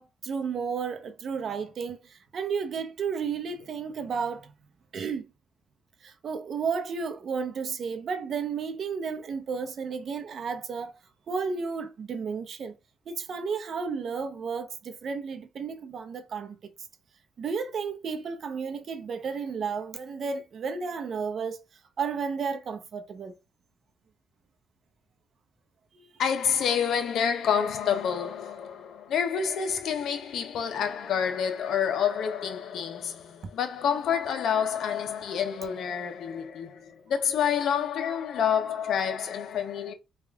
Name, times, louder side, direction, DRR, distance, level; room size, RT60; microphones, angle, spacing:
voice 1, 0.0-4.5 4.9-5.2 6.0-10.9 11.3-12.8 13.1-16.6 17.4-21.6 22.0-23.3 25.9-26.1, right 5 dB, 55° right, 0.7 m, -32 dB
voice 2, 26.2-39.9, left 7 dB, 70° left, 0.6 m, -28 dB
3.5 x 2.4 x 3.4 m
cardioid pair, 90°, 0 cm